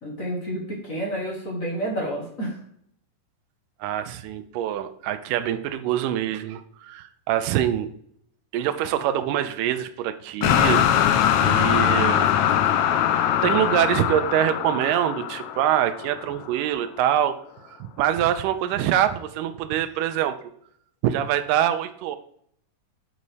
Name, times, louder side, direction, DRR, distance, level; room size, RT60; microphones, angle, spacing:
voice 1, 0.0-2.6, right 1 dB, 35° left, -2 dB, 1.5 m, -30 dB
voice 2, 3.8-7.9 8.5-11.1 11.4-12.3 12.7-12.8 13.4-17.4 17.6-20.4 21.0-22.2, right 11 dB, 90° right, 9 dB, 2.2 m, -24 dB
sound 1, 10.4-16.5, left 10 dB, 75° left, 1.8 m, -22 dB
7.5 x 4.1 x 4.8 m, 0.67 s
omnidirectional pair, 3.7 m